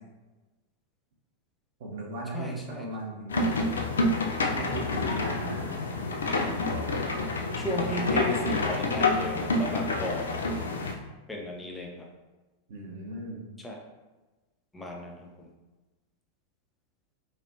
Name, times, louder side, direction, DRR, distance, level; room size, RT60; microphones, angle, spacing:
voice 1, 1.8-3.6 4.6-5.7 12.7-13.4, right 2 dB, 55° right, -2 dB, 0.7 m, -37 dB
voice 2, 2.3-2.9 7.6-10.7 11.3-12.1 13.6-13.8 14.7-15.5, left 1 dB, 10° left, -1 dB, 0.5 m, -35 dB
sound 1, 3.3-10.9, left 2 dB, 70° left, 0.3 m, -28 dB
3.2 x 2.4 x 2.6 m, 1.2 s
figure-of-eight pair, 90°, 0 cm